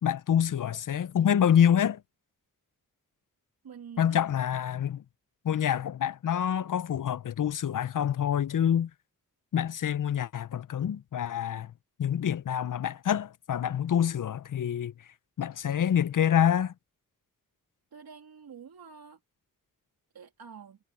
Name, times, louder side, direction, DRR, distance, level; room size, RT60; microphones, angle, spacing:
voice 1, 0.0-2.0 4.0-5.0 5.4-8.9 9.5-11.7 12.0-14.9 15.4-16.7, left 9 dB, 60° left, 0.6 m, -26 dB
voice 2, 3.6-4.2 17.9-19.2 20.1-20.8, right 6 dB, 90° right, 2.7 m, -47 dB
cardioid pair, 65°, 35 cm